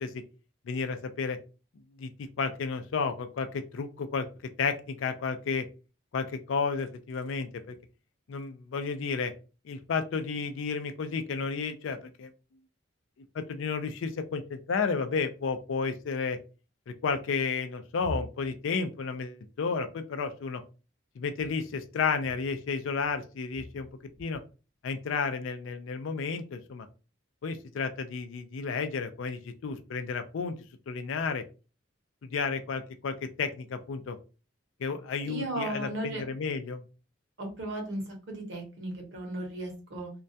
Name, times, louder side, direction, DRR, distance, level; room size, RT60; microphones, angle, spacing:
voice 1, 0.7-1.4 2.0-4.3 4.6-5.7 6.1-7.8 8.3-9.3 9.6-12.3 13.3-16.4 16.9-20.6 21.2-23.9 24.2-24.4 24.8-26.9 27.4-30.6 30.9-31.4 32.2-34.2 34.8-36.8, left 5 dB, 70° left, 8 dB, 0.4 m, -32 dB
voice 2, 35.2-36.2 37.4-40.1, right 1 dB, 60° right, 2 dB, 0.8 m, -36 dB
2.2 x 2.2 x 2.6 m, 0.33 s
head